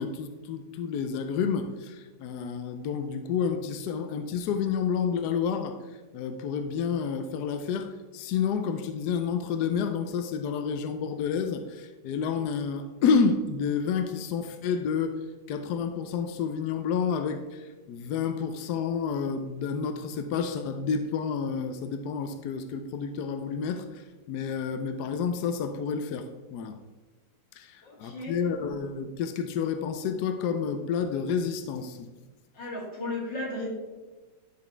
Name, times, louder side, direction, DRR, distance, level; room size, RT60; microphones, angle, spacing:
voice 1, 0.0-26.8 27.5-32.1, left 6 dB, 75° left, 8 dB, 1.1 m, -30 dB
voice 2, 27.8-28.4 32.5-33.7, left 2 dB, 90° left, -3 dB, 2.8 m, -35 dB
10.5 x 4.0 x 4.4 m, 1.2 s
omnidirectional pair, 1.9 m